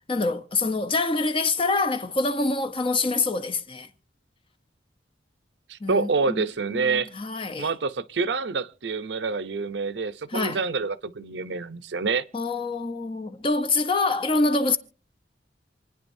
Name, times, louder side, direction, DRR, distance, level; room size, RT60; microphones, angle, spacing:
voice 1, 0.1-3.9 5.8-6.5 6.7-7.7 10.3-10.6 12.3-14.8, left 3 dB, 30° left, 0.7 m, -25 dB
voice 2, 5.7-7.1 7.6-12.2, right 4 dB, 75° right, 0.7 m, -27 dB
27.5 x 9.9 x 2.7 m
head